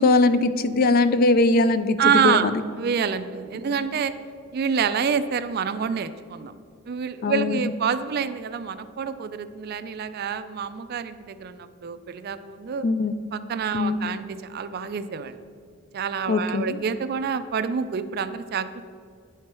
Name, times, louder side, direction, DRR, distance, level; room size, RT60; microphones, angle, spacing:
voice 1, 0.0-2.0 2.2-2.6 3.7-3.8 7.2-7.6 12.8-13.3 13.7-14.1 16.3-16.8, left 3 dB, 45° left, 12 dB, 0.3 m, -21 dB
voice 2, 2.0-4.1 4.5-6.5 6.9-12.9 13.3-15.4 15.9-18.8, right 6 dB, 50° right, 12 dB, 0.4 m, -27 dB
9.4 x 4.5 x 4.6 m, 2.3 s
head